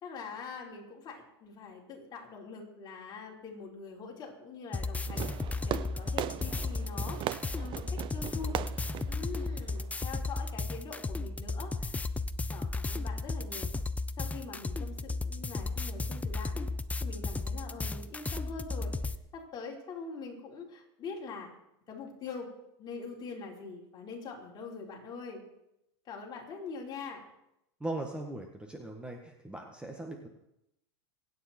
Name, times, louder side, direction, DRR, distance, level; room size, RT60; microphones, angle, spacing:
voice 1, 0.0-7.2 7.5-8.5 9.1-12.0 12.5-13.7 14.2-16.7 17.0-21.5 21.9-22.5 22.8-25.4 26.0-27.2, left 4 dB, 30° left, -2 dB, 4.6 m, -43 dB
sound 1, 4.7-19.2, left 3 dB, 10° left, 0.7 m, -35 dB
Fireworks, 5.1-10.1, right 12 dB, 40° right, 0.7 m, -39 dB
voice 2, 27.8-30.3, right 2 dB, 5° right, 2 dB, 1.6 m, -39 dB
25.0 x 9.4 x 4.5 m, 0.84 s
hypercardioid pair, 115°, 14 cm